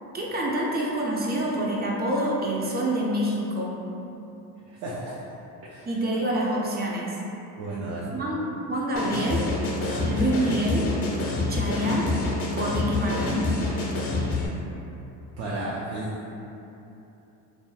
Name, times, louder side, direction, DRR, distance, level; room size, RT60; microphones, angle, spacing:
voice 1, 0.1-3.7 5.8-7.2 8.1-9.5 10.0-10.9 11.5-12.1 12.6-13.5, right 1 dB, 20° right, -3 dB, 0.4 m, -26 dB
voice 2, 4.8-5.1 5.7-5.9 7.6-8.1 15.4-16.3, right 2 dB, 70° right, -7 dB, 0.6 m, -33 dB
sound 1, 9.0-14.5, left 2 dB, 30° left, 0.5 m, -27 dB
2.3 x 2.1 x 3.1 m, 2.9 s
hypercardioid pair, 65°, 47 cm